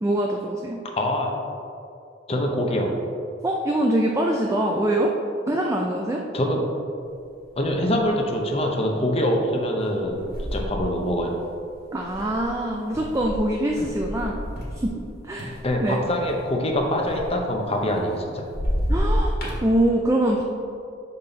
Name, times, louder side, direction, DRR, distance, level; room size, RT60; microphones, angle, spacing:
voice 1, 0.0-0.8 3.4-5.1 5.5-6.2 11.9-14.4 14.8-15.5 15.8-16.0 18.9-20.4, right 1 dB, 15° right, 0 dB, 0.4 m, -24 dB
voice 2, 1.0-1.3 2.3-2.9 6.3-6.6 7.6-10.2 10.5-11.4 15.6-18.5, left 1 dB, 30° left, 1 dB, 0.8 m, -24 dB
sound 1, 7.2-7.3 7.7-8.2 8.7-8.9 9.8-15.1 15.4-18.2 18.5-19.6, equal, 55° left, 1.6 m, -29 dB
5.8 x 5.5 x 3.9 m, 2.5 s
head